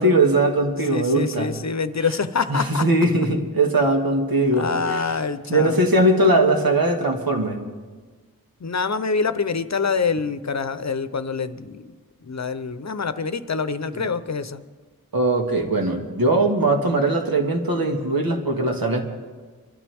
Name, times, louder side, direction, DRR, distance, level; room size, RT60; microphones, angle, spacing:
voice 1, 0.0-1.5 2.5-5.0 5.5-7.6 13.9-14.1 15.1-19.0, right 2 dB, 75° right, 2 dB, 1.9 m, -20 dB
voice 2, 0.9-2.9 3.2-3.3 4.5-5.8 8.6-14.6, left 5 dB, 50° left, 12 dB, 0.8 m, -26 dB
25.0 x 12.5 x 3.5 m, 1.4 s
wide cardioid pair, 55°, 36 cm